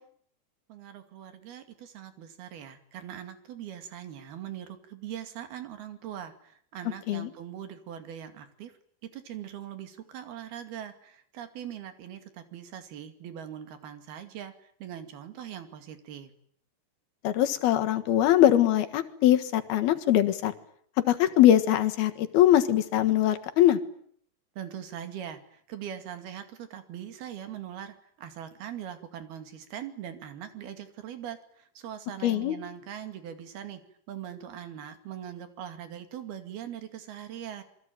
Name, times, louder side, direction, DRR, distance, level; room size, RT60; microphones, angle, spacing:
voice 1, 0.7-8.7 9.1-14.5 14.8-16.3 24.6-31.4 31.8-33.8 34.1-37.6, right 10 dB, 80° right, 9 dB, 4.3 m, -41 dB
voice 2, 17.2-20.5 21.1-23.8 32.2-32.6, left 12 dB, 80° left, 8 dB, 3.5 m, -22 dB
27.0 x 23.0 x 9.2 m, 0.64 s
omnidirectional pair, 4.4 m